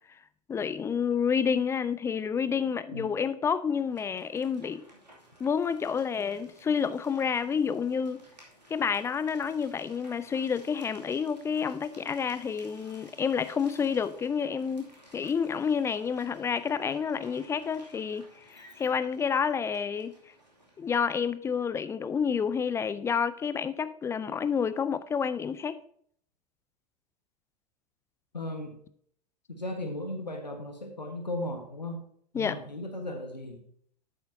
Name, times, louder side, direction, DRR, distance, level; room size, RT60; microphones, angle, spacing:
voice 1, 0.5-4.8 5.4-8.2 8.7-20.1 20.8-25.8 32.4-32.6, left 6 dB, 15° left, 0.4 m, -29 dB
sound 1, 3.7-21.0, equal, 85° right, 2.5 m, -56 dB
voice 2, 28.3-28.8 29.5-32.0 32.3-33.6, left 1 dB, 85° left, 1.4 m, -36 dB
10.5 x 8.6 x 2.7 m
figure-of-eight pair, 90°, 21 cm